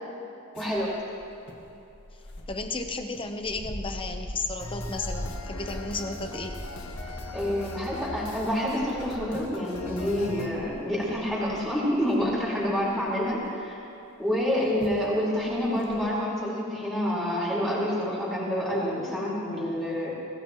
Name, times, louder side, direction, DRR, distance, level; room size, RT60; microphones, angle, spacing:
sound 1, 0.5-13.7 14.4-14.5 14.8-15.0 15.4-16.0, equal, 55° left, 1.9 m, -42 dB
voice 1, 0.5-0.9 7.3-13.8 14.2-20.1, equal, ahead, -8 dB, 4.7 m, -28 dB
voice 2, 2.5-6.6 14.6-14.7, left 3 dB, 25° left, 5 dB, 0.9 m, -34 dB
sound 2, 4.6-10.5, left 2 dB, 70° left, 1.6 m, -40 dB
25.0 x 18.0 x 3.1 m, 2.9 s
head